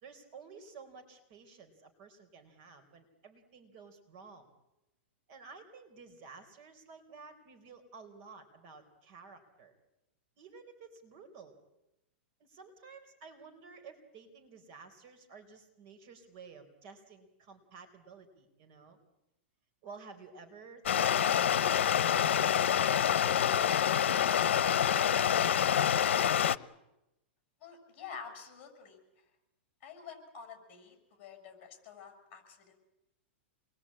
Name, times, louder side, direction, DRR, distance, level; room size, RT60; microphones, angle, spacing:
voice 1, 0.0-4.5 5.3-9.7 10.4-11.6 12.4-19.0 19.8-25.9, right 4 dB, 40° right, 9 dB, 4.0 m, -53 dB
Stream, 20.9-26.6, left 9 dB, 85° left, 0.8 m, -27 dB
voice 2, 27.6-29.0 29.8-32.8, left 6 dB, 35° left, 7 dB, 6.8 m, -48 dB
27.5 x 21.0 x 8.8 m, 0.93 s
supercardioid pair, 155°, 6 cm